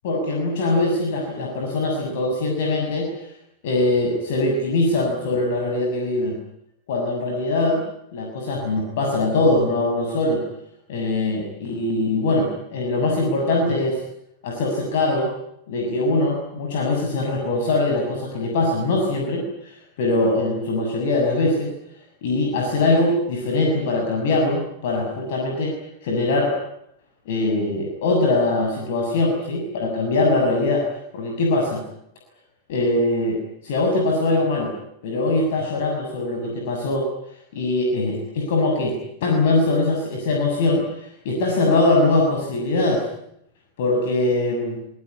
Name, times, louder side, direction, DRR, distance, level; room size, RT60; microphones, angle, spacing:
voice 1, 0.0-3.3 3.6-6.3 6.9-7.8 8.1-10.4 10.9-14.0 14.4-15.3 15.7-21.7 22.2-25.7 26.0-26.5 27.3-30.8 31.1-31.8 32.7-34.7 35.0-37.0 37.5-39.0 39.2-43.1 43.8-44.8, left 2 dB, 55° left, 1 dB, 7.0 m, -22 dB
26.0 x 21.0 x 9.7 m, 0.76 s
figure-of-eight pair, 90°, 0 cm